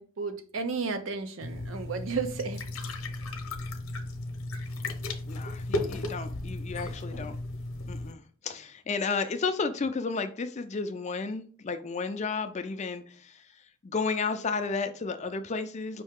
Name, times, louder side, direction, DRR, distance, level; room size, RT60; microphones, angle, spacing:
voice 1, 0.0-2.6, right 4 dB, 65° right, 0.6 m, -33 dB
sound 1, 1.4-8.1, left 2 dB, 70° left, 0.8 m, -35 dB
voice 2, 5.3-7.4 7.9-13.5 13.8-16.0, left 4 dB, 30° left, 0.4 m, -32 dB
5.3 x 2.7 x 3.6 m
head